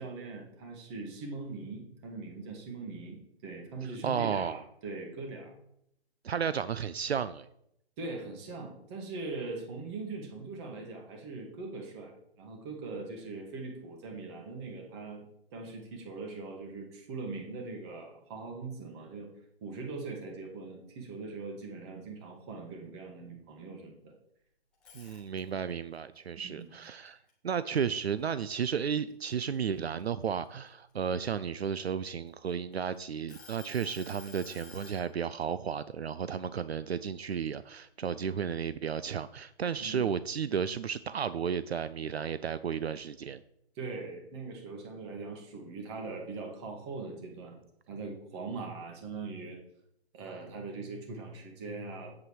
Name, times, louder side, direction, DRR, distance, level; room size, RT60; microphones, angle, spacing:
voice 1, 0.0-5.6 8.0-15.2 15.5-19.3 19.6-24.1 26.4-26.7 39.8-40.1 43.7-47.6 47.9-49.6 50.1-52.1, right 3 dB, 25° right, 1 dB, 2.2 m, -41 dB
voice 2, 4.0-4.6 6.2-7.5 24.9-27.2 27.4-43.4, right 7 dB, 75° right, 15 dB, 0.5 m, -33 dB
sound 1, 24.7-25.7 26.2-28.0 28.4-28.7 29.1-30.9 31.6-32.7 33.3-35.0, left 4 dB, 5° left, 0.5 m, -51 dB
8.2 x 7.9 x 4.8 m, 0.75 s
figure-of-eight pair, 145°, 32 cm